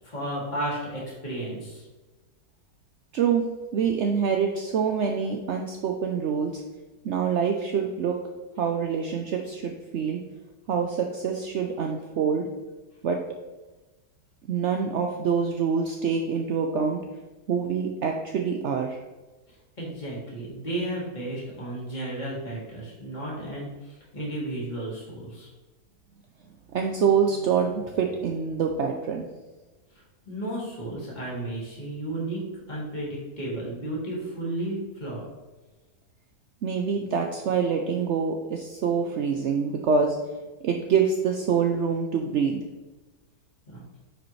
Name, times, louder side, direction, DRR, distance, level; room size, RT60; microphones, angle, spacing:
voice 1, 0.0-1.9 19.5-25.5 30.2-32.4 32.7-35.2 43.7-43.8, right 1 dB, 25° left, -6 dB, 2.6 m, -33 dB
voice 2, 3.1-3.4 3.7-6.5 7.0-8.2 8.6-10.2 10.7-12.5 13.0-13.2 14.5-17.0 17.5-19.0 26.7-29.3 36.6-40.2 40.6-42.6, right 6 dB, 70° right, 3 dB, 0.6 m, -25 dB
9.4 x 5.1 x 3.2 m, 1.2 s
omnidirectional pair, 1.9 m